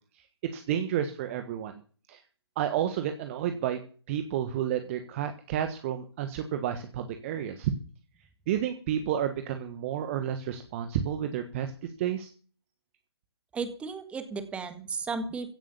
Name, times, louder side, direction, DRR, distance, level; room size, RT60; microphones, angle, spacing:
voice 1, 0.5-1.8 2.1-2.2 2.6-3.8 4.1-7.7 8.5-12.3, right 10 dB, 30° right, 7 dB, 1.4 m, -31 dB
voice 2, 13.5-15.5, right 4 dB, 10° right, 10 dB, 1.6 m, -34 dB
16.0 x 9.1 x 7.1 m, 0.40 s
figure-of-eight pair, 135°, 14 cm